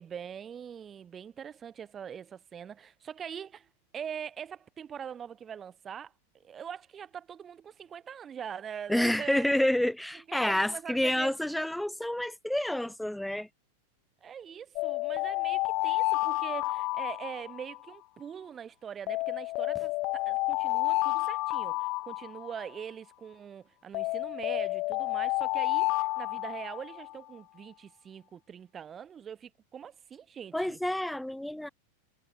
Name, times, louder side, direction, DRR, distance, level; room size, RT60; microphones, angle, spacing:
voice 1, 0.0-6.1 6.4-9.5 10.3-11.7 14.2-30.8, right 8 dB, 25° right, 1.1 m, -43 dB
voice 2, 8.9-13.5 30.5-31.7, left 1 dB, ahead, 0.6 m, -29 dB
sound 1, 14.8-17.9 19.1-22.8 23.9-27.2, left 22 dB, 40° left, 0.7 m, -30 dB
figure-of-eight pair, 90°, 0 cm